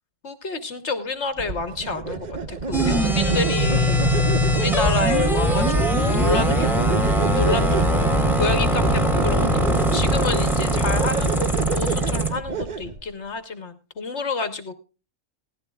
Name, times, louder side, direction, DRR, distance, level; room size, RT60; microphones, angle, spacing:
voice 1, 0.2-6.8 7.3-11.5 11.7-14.8, left 4 dB, 60° left, 9 dB, 1.4 m, -29 dB
sound 1, 1.4-13.0, right 4 dB, 40° right, 0.9 m, -30 dB
sound 2, 2.7-12.3, right 1 dB, ahead, 2.3 m, -21 dB
17.5 x 14.0 x 2.3 m, 0.32 s
omnidirectional pair, 1.4 m